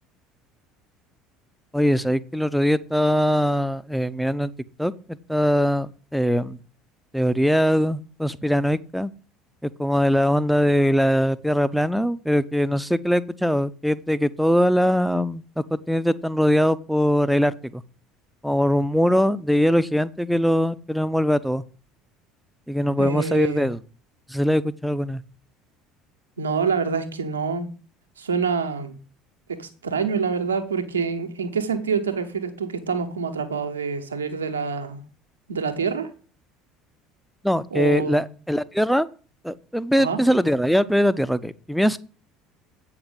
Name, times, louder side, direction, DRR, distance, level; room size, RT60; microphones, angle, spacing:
voice 1, 1.7-4.5 4.8-6.6 7.1-9.1 9.6-17.8 18.4-21.6 22.7-23.8 24.3-25.2 37.4-39.1 39.4-42.0, equal, ahead, 16 dB, 0.6 m, -21 dB
voice 2, 23.0-23.7 26.4-27.7 28.2-28.9 29.6-35.0 35.5-36.1 37.7-38.2 40.0-40.2, right 5 dB, 80° right, 8 dB, 1.2 m, -26 dB
8.6 x 5.9 x 7.7 m, 0.39 s
figure-of-eight pair, 65°, 0 cm